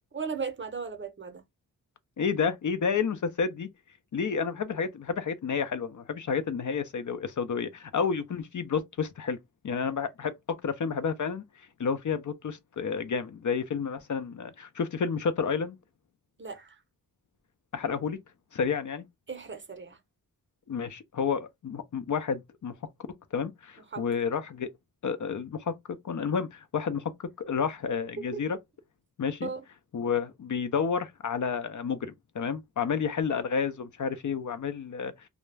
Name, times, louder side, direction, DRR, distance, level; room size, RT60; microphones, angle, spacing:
voice 1, 0.1-1.4 16.4-16.8 19.3-20.0 23.9-24.0 29.4-29.6, right 5 dB, 30° right, 0.7 m, -36 dB
voice 2, 2.2-3.7 4.1-9.4 9.6-11.4 11.8-15.8 17.7-18.2 18.5-19.0 20.7-22.7 23.3-24.7 25.0-25.8 26.0-27.1 27.4-28.6 29.2-29.5 29.9-35.1, left 6 dB, 55° left, 0.5 m, -30 dB
2.3 x 2.0 x 3.2 m
cardioid pair, 60°, 38 cm